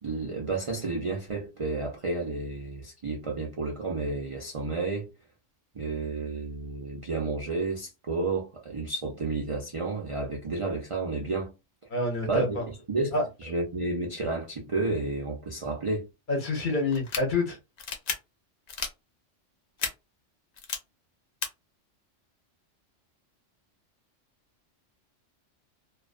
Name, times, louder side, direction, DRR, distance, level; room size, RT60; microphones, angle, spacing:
voice 1, 0.0-5.1 5.7-11.5 12.3-12.6 12.9-16.1, right 3 dB, 60° right, 0.3 m, -31 dB
voice 2, 11.9-12.6 13.1-13.2 16.3-17.6, left 2 dB, 50° left, 0.7 m, -27 dB
sound 1, 16.9-17.2 17.8-18.1 18.7-18.9 19.8-19.9 20.6-20.8 21.4-21.5, left 6 dB, 65° left, 0.4 m, -31 dB
2.4 x 2.2 x 2.4 m
omnidirectional pair, 1.3 m